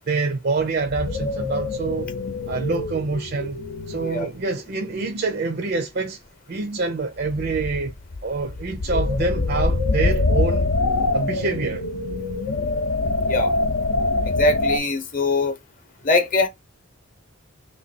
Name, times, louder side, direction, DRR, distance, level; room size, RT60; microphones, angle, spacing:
voice 1, 0.1-2.1 2.5-3.6 3.9-6.2 6.5-7.9 8.2-10.7 11.1-11.8, right 3 dB, 50° right, 0.5 m, -26 dB
sound 1, 0.6-4.3 4.9-5.2 7.3-14.8, left 2 dB, 75° left, 0.6 m, -24 dB
voice 2, 14.3-15.5 16.0-16.5, left 2 dB, 40° left, 0.8 m, -22 dB
3.0 x 3.0 x 4.1 m
head